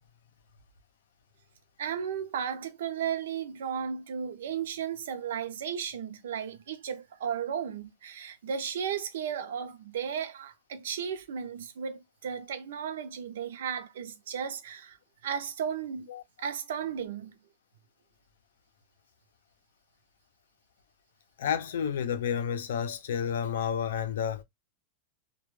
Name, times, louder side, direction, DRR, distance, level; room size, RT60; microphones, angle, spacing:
voice 1, 1.8-15.0 15.2-16.1 16.4-17.3, right 7 dB, 80° right, 0.5 m, -34 dB
voice 2, 21.4-24.4, left 8 dB, 90° left, 0.5 m, -30 dB
2.2 x 2.1 x 3.1 m
supercardioid pair, 180°, 0 cm